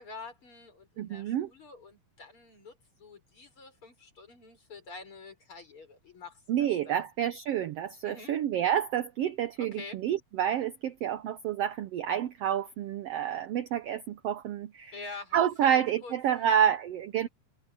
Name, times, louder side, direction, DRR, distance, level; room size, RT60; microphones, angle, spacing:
voice 1, 0.0-7.0 8.0-8.3 9.6-10.0 14.9-16.5, left 3 dB, 40° left, 6.5 m, -46 dB
voice 2, 1.0-1.5 6.5-15.0 15.3-17.3, right 10 dB, 70° right, 1.5 m, -29 dB
omnidirectional pair, 3.6 m